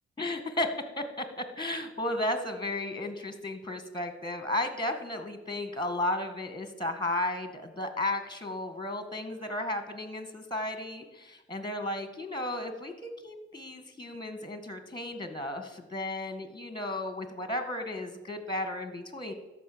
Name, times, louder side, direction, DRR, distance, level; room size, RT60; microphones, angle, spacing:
voice 1, 0.2-19.3, left 1 dB, 15° left, 9 dB, 1.8 m, -34 dB
13.0 x 5.3 x 6.9 m, 1.1 s
hypercardioid pair, 45°, 29 cm